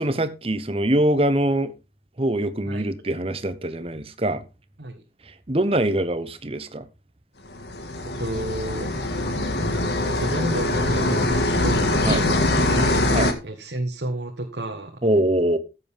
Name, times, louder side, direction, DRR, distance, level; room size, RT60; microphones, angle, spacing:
voice 1, 0.0-1.7 2.2-4.4 5.3-6.9 12.0-12.2 13.1-13.3 15.0-15.6, right 1 dB, 35° right, 1.0 m, -23 dB
sound 1, 7.5-13.3, left 2 dB, 75° left, 1.8 m, -23 dB
voice 2, 8.0-8.9 10.0-15.0, right 1 dB, 80° right, 1.3 m, -31 dB
14.0 x 7.8 x 3.6 m
head